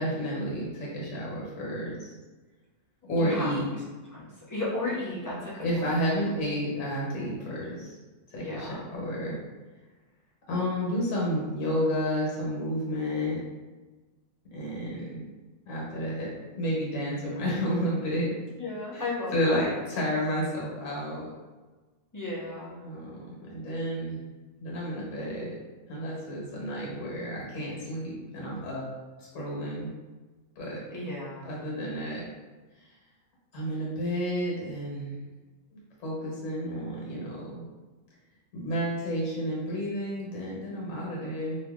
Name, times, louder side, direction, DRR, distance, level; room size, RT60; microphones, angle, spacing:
voice 1, 0.0-2.1 3.1-3.6 5.6-8.0 8.3-9.3 10.5-13.4 14.5-15.2 15.6-18.3 18.9-19.0 19.3-21.3 22.8-24.2 24.6-25.5 25.9-29.0 29.3-29.9 30.6-30.8 31.4-32.3 33.5-35.1 36.0-37.6 38.5-41.6, equal, 65° left, -4 dB, 1.3 m, -31 dB
voice 2, 3.1-3.8 4.1-6.0 8.4-8.9 18.6-19.7 22.1-22.8 30.9-31.5, left 2 dB, 30° left, -8 dB, 0.4 m, -34 dB
2.7 x 2.7 x 3.5 m, 1.3 s
omnidirectional pair, 1.5 m